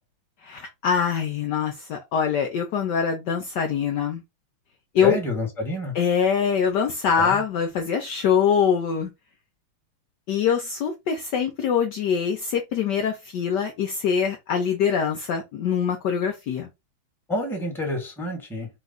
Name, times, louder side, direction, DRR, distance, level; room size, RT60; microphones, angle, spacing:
voice 1, 0.4-4.2 4.9-5.2 5.9-9.1 10.3-16.7, left 7 dB, 70° left, 1.1 m, -24 dB
voice 2, 5.0-5.9 7.2-7.4 17.3-18.7, left 1 dB, ahead, 1.1 m, -28 dB
4.7 x 2.3 x 3.9 m
omnidirectional pair, 2.3 m